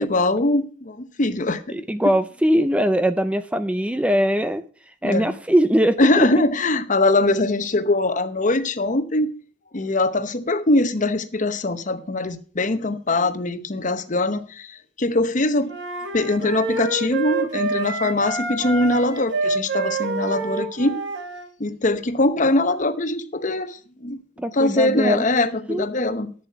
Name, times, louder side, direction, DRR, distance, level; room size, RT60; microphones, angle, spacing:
voice 1, 0.0-1.8 5.0-5.3 6.0-9.3 9.7-15.7 16.1-21.0 21.6-24.2 24.5-26.3, left 2 dB, 45° left, 0.9 m, -22 dB
voice 2, 1.7-4.6 5.0-6.3 24.4-25.2 25.7-25.9, equal, 5° right, 0.4 m, -21 dB
sound 1, 15.7-21.5, right 3 dB, 80° right, 1.7 m, -27 dB
10.0 x 7.3 x 5.7 m
head